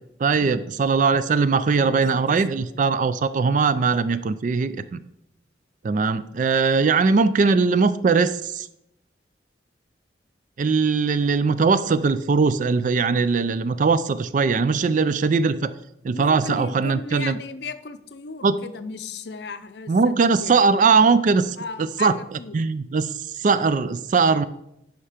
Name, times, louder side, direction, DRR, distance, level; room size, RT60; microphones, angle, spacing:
voice 1, 0.2-5.0 5.8-8.7 10.6-15.7 16.0-17.4 18.4-18.6 19.9-24.4, right 4 dB, 45° right, 15 dB, 0.4 m, -20 dB
voice 2, 1.8-2.9 16.1-20.6 21.6-22.6, left 4 dB, 65° left, 12 dB, 0.6 m, -36 dB
9.9 x 5.8 x 5.0 m, 0.81 s
head